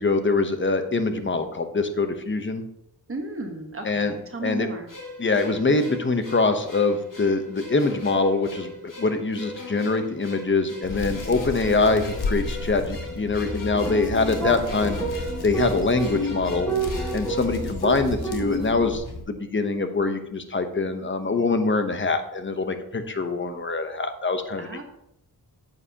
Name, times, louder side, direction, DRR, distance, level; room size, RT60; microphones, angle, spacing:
voice 1, 0.0-2.6 3.8-4.1 4.4-4.7 5.2-15.0 15.4-16.7 17.1-24.7, left 3 dB, 30° left, 8 dB, 0.9 m, -24 dB
voice 2, 3.1-4.9 14.4-14.5 24.6-24.8, right 2 dB, 35° right, 3 dB, 1.3 m, -34 dB
sound 1, 4.9-18.1, left 3 dB, 50° left, 3.3 m, -39 dB
Hands, 10.8-19.2, left 3 dB, 70° left, 1.4 m, -34 dB
sound 2, 13.7-19.0, right 2 dB, 10° left, 2.3 m, -30 dB
9.6 x 7.8 x 2.9 m, 0.80 s
wide cardioid pair, 90°, 40 cm